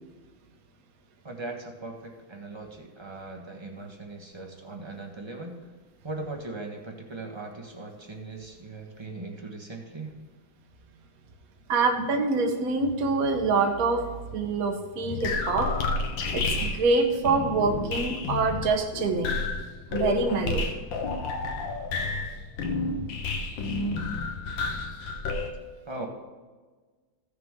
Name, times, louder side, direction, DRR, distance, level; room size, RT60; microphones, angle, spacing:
voice 1, 1.2-5.5 6.0-10.1 25.9-26.1, right 2 dB, 20° right, 1 dB, 0.9 m, -39 dB
voice 2, 11.7-14.0 14.3-15.7 16.3-19.4 19.9-20.6, right 3 dB, 50° right, 4 dB, 1.4 m, -25 dB
sound 1, 15.1-25.5, left 3 dB, 70° left, 1.7 m, -30 dB
15.5 x 6.8 x 3.7 m, 1.4 s
omnidirectional pair, 2.2 m